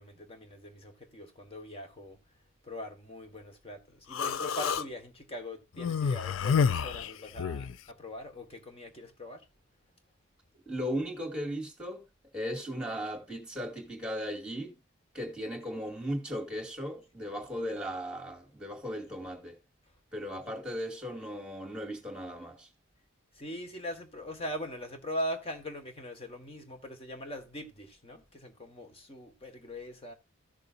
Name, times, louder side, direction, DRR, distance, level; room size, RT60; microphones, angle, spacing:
voice 1, 0.0-2.2 2.6-9.4 23.3-30.1, equal, 30° left, 1.6 m, -41 dB
Human voice, 4.1-4.9 5.8-7.8, left 6 dB, 70° left, 0.4 m, -29 dB
voice 2, 10.7-12.0 12.3-14.7 15.1-19.6 20.1-22.7, equal, 5° right, 2.3 m, -37 dB
15.0 x 6.7 x 2.6 m
head